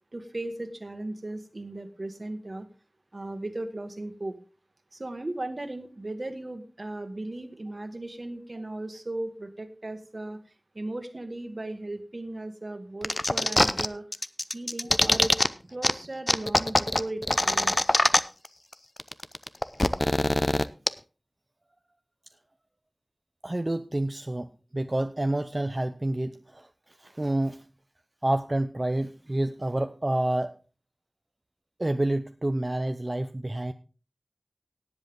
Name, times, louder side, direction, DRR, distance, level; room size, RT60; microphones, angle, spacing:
voice 1, 0.1-2.7 3.1-4.4 4.9-10.4 10.7-14.0 14.5-15.4 15.6-17.8, right 2 dB, 60° right, 8 dB, 1.7 m, -37 dB
sound 1, 13.0-13.9 14.1-15.5 15.8-15.9 16.3-18.5 18.7-18.8 19.0-20.9, left 1 dB, 40° left, 0.6 m, -23 dB
voice 2, 23.4-27.7 28.2-30.5 31.8-33.7, right 1 dB, 40° right, 9 dB, 0.6 m, -29 dB
17.5 x 8.0 x 3.7 m, 0.34 s
wide cardioid pair, 50°, 0 cm